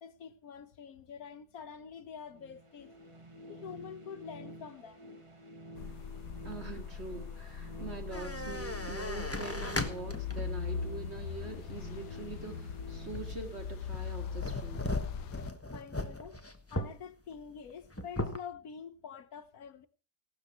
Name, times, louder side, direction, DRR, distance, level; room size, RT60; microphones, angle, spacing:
voice 1, 0.0-2.9 3.5-5.1 15.7-16.4 16.7-19.9, left 7 dB, 65° left, 1.4 m, -46 dB
sound 1, 2.3-14.2, equal, 20° right, 1.5 m, -50 dB
sound 2, 5.8-15.5, left 7 dB, 80° left, 1.4 m, -40 dB
voice 2, 6.4-14.9, right 4 dB, 40° right, 2.4 m, -44 dB
sound 3, 8.1-10.5 11.1-11.2 13.1-13.5 13.9-17.0 17.4-17.5 17.7-18.4, left 1 dB, 10° left, 1.1 m, -37 dB
16.5 x 12.5 x 4.6 m
omnidirectional pair, 1.8 m